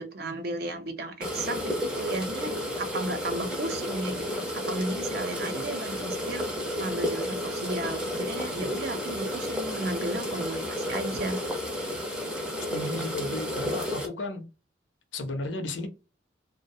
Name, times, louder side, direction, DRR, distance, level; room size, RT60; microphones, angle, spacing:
voice 1, 0.0-2.5 2.8-4.3 4.5-6.5 6.8-11.4, right 2 dB, 55° right, 7 dB, 0.5 m, -34 dB
sound 1, 1.2-14.1, left 1 dB, 5° right, 0.5 m, -32 dB
voice 2, 12.7-14.5 15.1-15.9, left 2 dB, 75° left, 7 dB, 0.6 m, -34 dB
2.3 x 2.1 x 2.6 m, 0.30 s
head